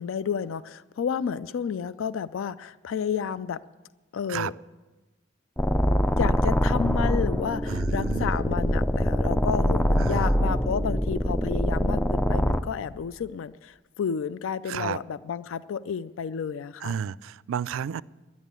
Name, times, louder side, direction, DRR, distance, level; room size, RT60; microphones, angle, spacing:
voice 1, 0.0-3.6 4.1-4.5 6.2-17.0, left 7 dB, 80° left, 17 dB, 0.4 m, -31 dB
sound 1, 5.6-12.6, equal, 5° left, 0.3 m, -24 dB
voice 2, 7.7-8.3 10.0-10.3 14.7-15.0 16.8-18.0, right 7 dB, 85° right, 20 dB, 0.3 m, -31 dB
11.0 x 11.0 x 8.2 m, 1.2 s
head